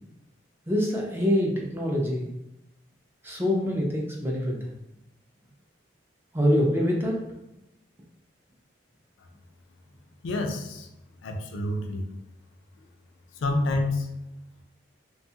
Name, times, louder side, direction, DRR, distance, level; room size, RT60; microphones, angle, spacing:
voice 1, 0.7-2.3 3.2-4.7 6.3-7.2, equal, 10° right, -2 dB, 0.4 m, -25 dB
voice 2, 10.2-10.9 11.2-12.1 13.4-14.1, left 2 dB, 80° left, 4 dB, 0.4 m, -28 dB
2.7 x 2.2 x 2.7 m, 0.90 s
head